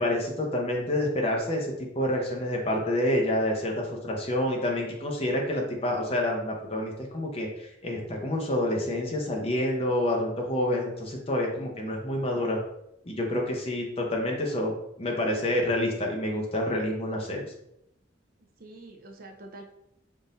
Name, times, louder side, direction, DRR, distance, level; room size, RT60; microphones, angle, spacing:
voice 1, 0.0-12.6 13.0-14.7 15.0-17.5, left 1 dB, 30° left, 0 dB, 0.7 m, -28 dB
voice 2, 18.6-19.6, right 2 dB, 50° right, 3 dB, 0.5 m, -46 dB
3.7 x 2.6 x 4.0 m, 0.81 s
head